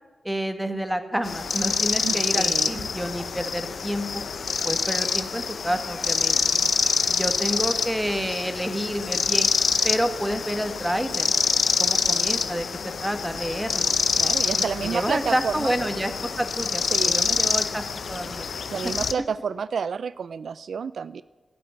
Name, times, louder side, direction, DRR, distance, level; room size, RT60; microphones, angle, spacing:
voice 1, 0.2-4.2 4.6-6.6 7.1-9.5 9.8-11.4 11.8-12.7 13.0-14.0 14.9-18.5, equal, 5° right, 8 dB, 1.4 m, -29 dB
sound 1, 1.2-19.1, left 5 dB, 70° left, 0.6 m, -26 dB
voice 2, 2.0-2.9 14.2-15.7 16.9-17.4 18.7-21.2, right 6 dB, 80° right, 15 dB, 0.3 m, -30 dB
12.5 x 7.8 x 9.3 m, 1.3 s
cardioid pair, 60°, 0 cm